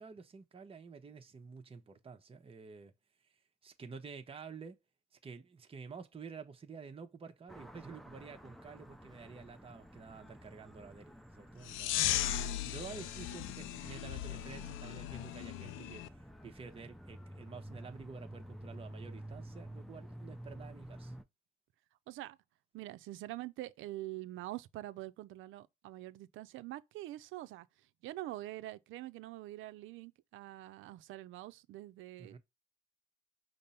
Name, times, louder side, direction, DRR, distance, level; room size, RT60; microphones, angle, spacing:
voice 1, 0.0-2.9 3.2-3.3 3.6-4.8 5.1-12.0 12.6-21.2 32.2-32.4, right 5 dB, 30° right, 0.8 m, -50 dB
sound 1, 7.5-21.2, right 1 dB, ahead, 0.5 m, -51 dB
sound 2, 11.6-16.1, left 12 dB, 85° left, 0.4 m, -37 dB
voice 2, 22.1-22.4 22.7-27.7 28.0-32.4, right 16 dB, 85° right, 0.4 m, -45 dB
5.2 x 2.0 x 4.1 m
cardioid pair, 90°, 20 cm